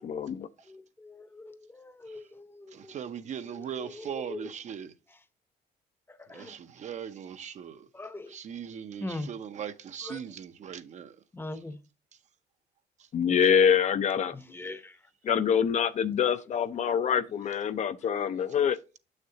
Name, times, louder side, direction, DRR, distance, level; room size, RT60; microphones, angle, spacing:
voice 1, 0.0-0.5 13.1-14.4 15.2-18.8, left 8 dB, 45° left, 0.5 m, -25 dB
voice 2, 0.7-2.9 3.4-4.5 6.1-6.5 7.9-8.3 9.0-9.3 10.0-10.2 11.3-11.8 14.3-15.0 16.2-16.3, left 2 dB, 15° left, 0.7 m, -42 dB
voice 3, 2.7-4.9 6.3-7.9 8.3-11.2, right 8 dB, 45° right, 0.6 m, -39 dB
6.7 x 6.5 x 2.8 m
cardioid pair, 110°, 17 cm